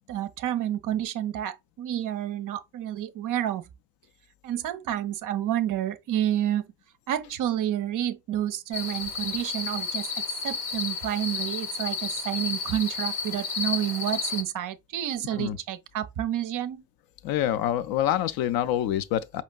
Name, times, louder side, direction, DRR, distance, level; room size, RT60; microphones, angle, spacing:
voice 1, 0.1-3.6 4.4-6.7 7.1-10.1 10.4-16.8, right 11 dB, 45° right, 0.5 m, -29 dB
sound 1, 8.7-14.4, left 5 dB, 70° left, 1.1 m, -32 dB
voice 2, 17.2-19.4, left 11 dB, 50° left, 0.5 m, -26 dB
4.9 x 2.8 x 2.3 m
figure-of-eight pair, 45°, 47 cm